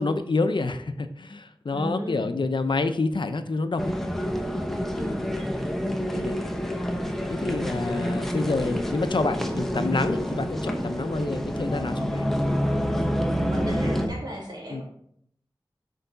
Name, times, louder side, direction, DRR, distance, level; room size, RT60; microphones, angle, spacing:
voice 1, 0.0-3.9 6.1-6.3 7.4-12.2 14.7-14.8, left 3 dB, 70° left, 9 dB, 0.5 m, -28 dB
voice 2, 1.7-2.3 4.9-5.3 13.5-14.8, equal, 55° right, -3 dB, 2.3 m, -35 dB
sound 1, 3.8-14.1, equal, 5° left, 0.8 m, -27 dB
6.7 x 4.6 x 3.9 m, 0.69 s
wide cardioid pair, 65°, 9 cm